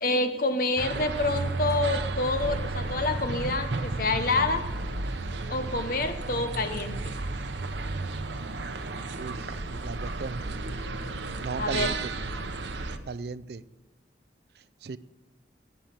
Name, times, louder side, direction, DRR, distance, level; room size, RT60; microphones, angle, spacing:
voice 1, 0.0-4.7 5.5-7.1 11.6-11.9, left 2 dB, 50° left, 8 dB, 1.0 m, -27 dB
sound 1, 0.8-13.0, right 2 dB, 80° right, 0.9 m, -33 dB
voice 2, 9.2-9.5 9.8-10.4 11.4-12.1 13.1-13.6 14.8-15.0, right 4 dB, 65° right, 16 dB, 0.4 m, -36 dB
11.5 x 8.8 x 5.9 m, 1.1 s
head